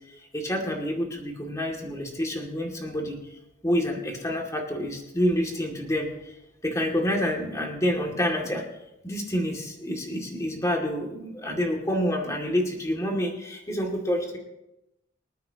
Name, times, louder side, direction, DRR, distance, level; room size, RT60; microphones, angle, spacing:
voice 1, 0.2-6.3 6.6-8.6 9.0-14.4, equal, 15° left, 0 dB, 2.3 m, -28 dB
25.5 x 9.2 x 2.9 m, 0.90 s
head